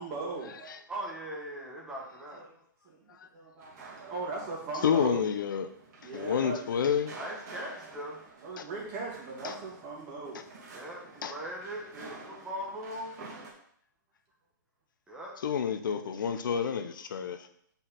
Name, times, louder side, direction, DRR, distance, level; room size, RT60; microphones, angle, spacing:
voice 1, 0.0-0.8 2.3-2.5 2.8-5.2 6.0-6.7 8.4-10.5, right 3 dB, 30° right, -3 dB, 2.6 m, -39 dB
voice 2, 0.9-2.5 6.1-6.5 7.1-8.2 10.7-13.2 15.1-15.3, equal, 5° right, -3 dB, 1.5 m, -40 dB
custard-square-with-skateboarders-edited, 3.6-13.5, right 3 dB, 50° right, 2.4 m, -50 dB
voice 3, 4.8-5.7 6.0-7.1 8.6-8.7 9.4-9.5 11.2-11.3 15.4-17.5, left 7 dB, 75° left, 9 dB, 0.7 m, -29 dB
5.3 x 4.7 x 5.7 m, 0.67 s
hypercardioid pair, 150°, 11 cm